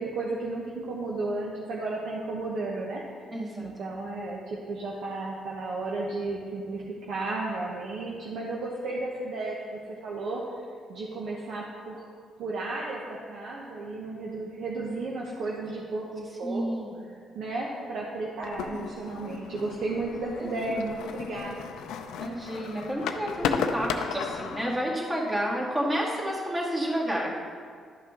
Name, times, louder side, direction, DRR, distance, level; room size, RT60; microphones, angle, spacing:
voice 1, 0.0-3.0 3.6-10.4 10.9-12.0 12.4-16.6 17.3-21.6, right 2 dB, 70° right, -3 dB, 1.0 m, -33 dB
voice 2, 3.3-3.7 16.4-17.0 20.4-21.0 22.2-27.4, equal, 20° right, -4 dB, 2.1 m, -30 dB
sound 1, 18.4-24.7, left 6 dB, 90° left, 0.5 m, -34 dB
11.5 x 5.6 x 3.7 m, 2.2 s
cardioid pair, 90°, 0 cm